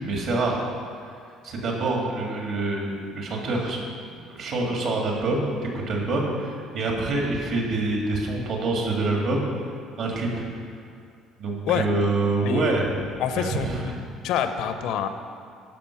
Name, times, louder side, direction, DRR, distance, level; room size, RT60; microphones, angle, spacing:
voice 1, 0.0-0.6 1.4-5.5 5.7-9.5 10.0-10.5 11.4-12.9 13.3-13.9, right 2 dB, 50° right, -1 dB, 1.9 m, -26 dB
voice 2, 12.4-12.7 13.2-13.9 14.2-15.1, left 8 dB, 65° left, 9 dB, 0.6 m, -26 dB
12.5 x 5.1 x 5.8 m, 2.3 s
cardioid pair, 170°, 0 cm